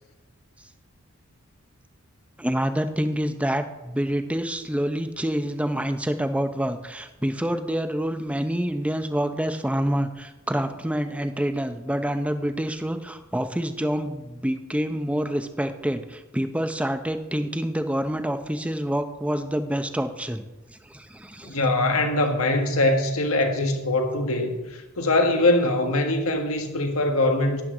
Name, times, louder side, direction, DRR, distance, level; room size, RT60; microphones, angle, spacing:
voice 1, 2.4-20.5 20.8-21.6, equal, 5° right, 8 dB, 0.6 m, -27 dB
voice 2, 21.4-27.6, left 2 dB, 90° left, 4 dB, 1.6 m, -22 dB
12.0 x 10.5 x 3.8 m, 1.1 s
head